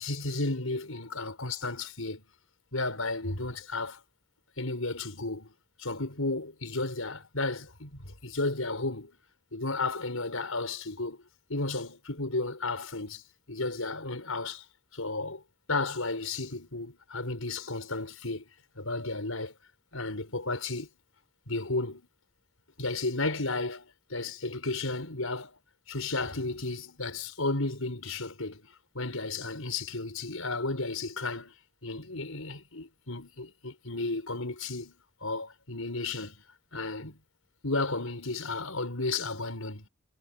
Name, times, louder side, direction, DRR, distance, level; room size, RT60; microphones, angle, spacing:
voice 1, 0.0-2.2 2.7-4.0 4.6-9.2 9.5-11.2 11.5-13.2 13.5-14.6 14.9-15.4 15.7-18.5 18.8-19.5 19.9-20.9 21.5-22.1 22.8-25.6 25.9-28.7 28.9-31.5 31.8-35.0 35.2-36.4 36.7-37.2 37.6-39.9, left 3 dB, 90° left, 5.6 m, -33 dB
head